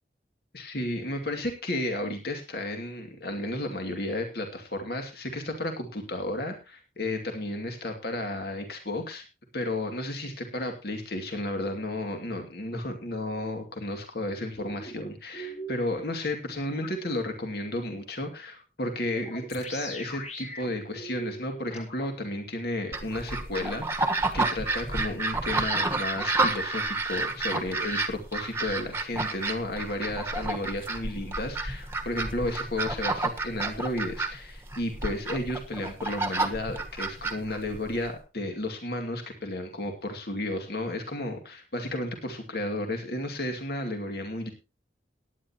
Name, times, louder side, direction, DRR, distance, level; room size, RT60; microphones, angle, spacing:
voice 1, 0.5-9.2 9.5-44.5, left 1 dB, 60° left, 4 dB, 2.4 m, -33 dB
sound 1, 14.6-16.0 16.8-16.9 19.1-22.1, right 1 dB, 40° left, 2.6 m, -40 dB
sound 2, 22.9-38.1, right 2 dB, 15° right, 1.3 m, -30 dB
17.5 x 10.0 x 2.9 m, 0.27 s
head